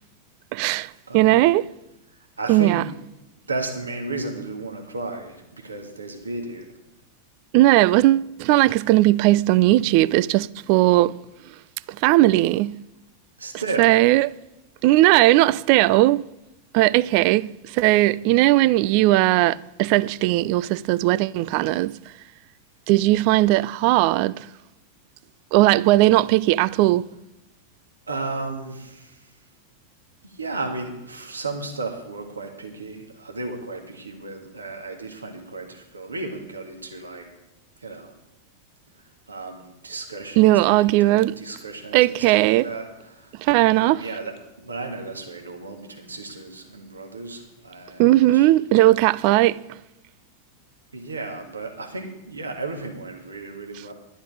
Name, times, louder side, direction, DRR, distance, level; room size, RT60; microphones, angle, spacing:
voice 1, 0.5-1.7 2.5-2.8 7.5-11.1 12.0-12.8 13.8-14.3 14.8-16.2 16.7-22.0 22.9-24.5 25.5-27.0 40.4-41.3 41.9-42.7 43.4-44.0 48.0-49.6, right 17 dB, 45° right, 0.3 m, -18 dB
voice 2, 1.1-1.5 2.4-2.9 3.5-6.6 13.4-14.0 28.1-29.3 30.2-37.3 37.8-38.1 39.3-43.3 43.8-48.5 50.9-53.9, right 3 dB, 75° right, 1.8 m, -34 dB
11.5 x 10.0 x 4.9 m
figure-of-eight pair, 90°, 0 cm